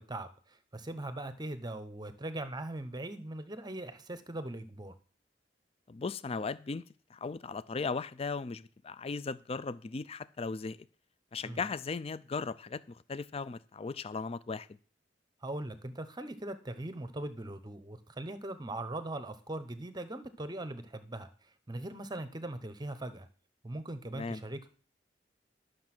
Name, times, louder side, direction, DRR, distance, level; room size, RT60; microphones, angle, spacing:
voice 1, 0.0-4.9 11.4-11.6 15.4-23.3 23.6-24.7, right 1 dB, 25° right, 1.0 m, -40 dB
voice 2, 5.9-6.8 7.1-10.8 11.3-14.7 24.1-24.4, left 4 dB, 35° left, 0.4 m, -37 dB
12.0 x 6.5 x 6.0 m
head